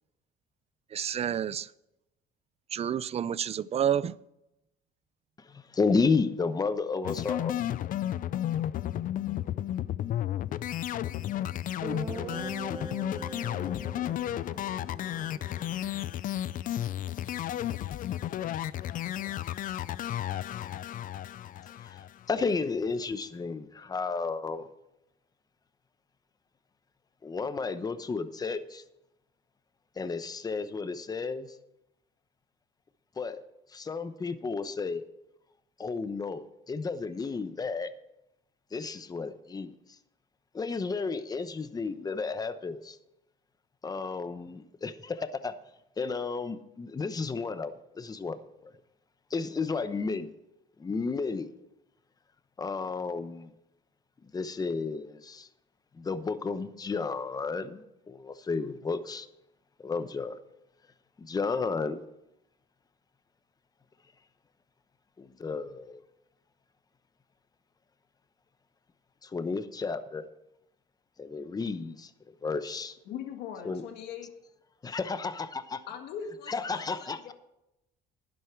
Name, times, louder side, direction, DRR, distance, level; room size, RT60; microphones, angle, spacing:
voice 1, 0.9-1.7 2.7-4.2, right 9 dB, 40° right, 0.5 m, -29 dB
voice 2, 5.4-7.6 21.8-24.7 27.2-28.8 30.0-31.6 33.2-33.4 33.7-35.0 35.8-37.9 38.7-39.7 40.5-43.0 43.8-45.5 46.0-48.7 49.3-50.3 50.8-51.5 52.6-53.5 54.3-55.5 56.0-59.3 59.8-60.4 61.2-62.0 65.2-66.0 69.2-70.3 71.2-72.1 72.4-73.0 73.6-73.8 74.8-75.8 76.5-77.3, left 4 dB, 20° left, 0.9 m, -32 dB
sound 1, 7.0-22.4, left 12 dB, 55° left, 0.5 m, -33 dB
Guitar, 11.2-11.3 11.8-15.9, right 3 dB, 20° right, 1.1 m, -42 dB
voice 3, 73.1-74.3 75.9-77.3, left 8 dB, 80° left, 1.7 m, -41 dB
11.5 x 11.0 x 4.5 m
cardioid pair, 110°, 17 cm